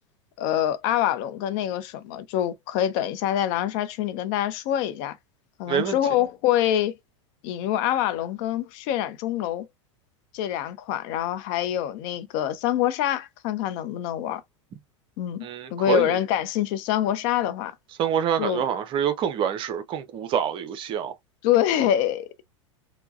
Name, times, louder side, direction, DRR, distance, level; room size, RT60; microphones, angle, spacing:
voice 1, 0.4-5.2 5.6-6.9 7.4-9.7 10.3-14.4 15.2-17.7 18.4-18.6 21.4-22.5, left 11 dB, 45° left, 0.6 m, -25 dB
voice 2, 5.7-6.0 15.4-16.2 18.0-21.1, right 8 dB, 30° right, 0.6 m, -26 dB
4.5 x 2.1 x 2.5 m
figure-of-eight pair, 85°, 16 cm